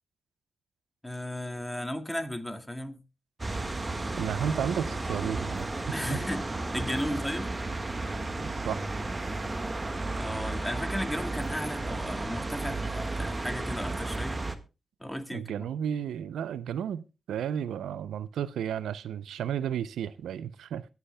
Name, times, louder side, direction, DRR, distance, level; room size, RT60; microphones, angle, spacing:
voice 1, 1.0-3.0 5.9-6.5 6.7-7.5 10.2-14.4 15.0-15.5, equal, 10° left, 2.0 m, -35 dB
sound 1, 3.4-14.6, right 2 dB, 30° right, 1.5 m, -33 dB
voice 2, 4.2-6.2 8.4-8.9 15.3-20.9, right 9 dB, 85° right, 0.5 m, -33 dB
22.5 x 8.3 x 2.2 m
supercardioid pair, 50°, 0 cm